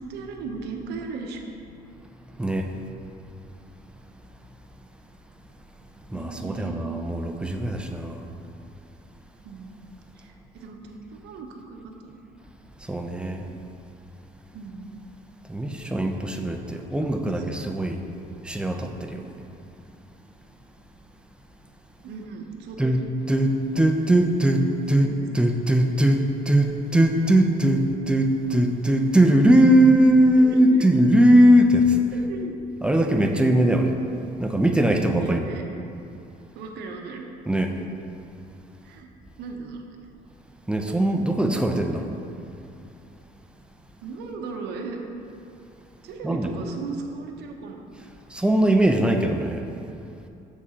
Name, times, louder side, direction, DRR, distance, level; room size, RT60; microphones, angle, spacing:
voice 1, 0.0-1.5 6.1-6.9 9.4-9.7 10.2-12.3 14.5-14.9 16.4-17.4 22.0-23.0 24.9-25.3 30.4-30.5 30.8-30.9 32.1-32.5 33.3-33.5 35.2-35.7 36.5-37.2 38.8-39.1 39.4-40.0 44.0-45.0 46.0-47.8, right 4 dB, 80° right, 2 dB, 0.8 m, -37 dB
voice 2, 6.1-8.2 12.9-13.4 15.5-18.0 18.4-19.2 22.8-32.0 32.8-33.9 34.4-35.4 37.5-37.7 40.7-42.1 46.2-46.5 48.3-49.6, right 1 dB, 5° right, 3 dB, 0.5 m, -20 dB
7.2 x 4.2 x 4.9 m, 2.7 s
cardioid pair, 110°, 17 cm